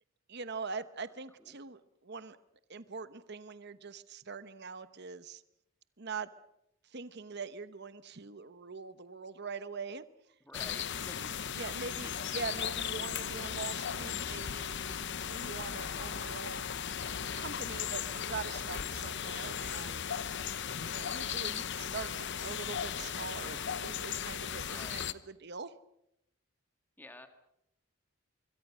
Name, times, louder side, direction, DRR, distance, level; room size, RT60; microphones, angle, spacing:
voice 1, 0.3-2.4 2.7-5.4 6.0-6.3 6.8-10.0 11.2-16.7 17.3-20.1 20.8-25.7, right 4 dB, 50° right, 13 dB, 1.0 m, -43 dB
voice 2, 10.4-11.6 18.6-19.0 24.7-25.1 27.0-27.3, left 1 dB, 10° left, 7 dB, 2.0 m, -51 dB
sound 1, 10.5-25.1, left 8 dB, 55° left, 0.9 m, -37 dB
25.5 x 23.0 x 6.3 m, 0.80 s
head